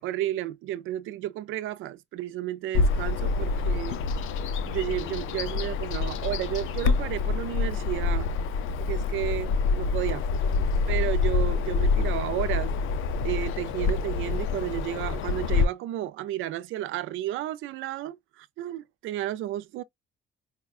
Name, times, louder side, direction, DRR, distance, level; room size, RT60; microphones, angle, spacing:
voice 1, 0.0-4.0 4.6-8.3 8.8-10.2 10.9-12.8 13.2-19.8, right 13 dB, 85° right, 0.4 m, -32 dB
Bird vocalization bird call bird song, 2.7-15.6, left 4 dB, 85° left, 0.5 m, -27 dB
4.8 x 2.2 x 2.4 m
cardioid pair, 90°, 20 cm